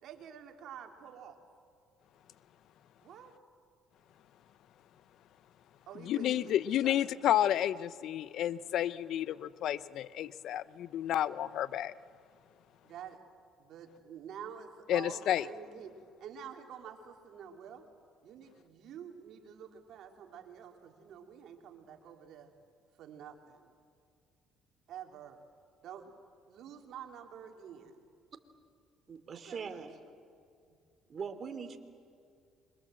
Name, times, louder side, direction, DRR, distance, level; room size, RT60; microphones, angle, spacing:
voice 1, 0.0-1.4 3.0-3.3 5.9-7.3 12.8-13.2 13.6-17.9 18.2-22.5 23.0-23.7 24.9-25.4 25.8-26.1 26.5-28.0 29.3-30.0 30.7-30.8, right 8 dB, 65° right, 4 dB, 3.2 m, -48 dB
voice 2, 6.0-11.9 14.9-15.5, left 11 dB, 65° left, 17 dB, 0.7 m, -31 dB
voice 3, 29.1-29.9 31.1-31.8, right 6 dB, 45° right, 8 dB, 2.9 m, -41 dB
27.5 x 24.5 x 7.7 m, 2.3 s
supercardioid pair, 80°, 0 cm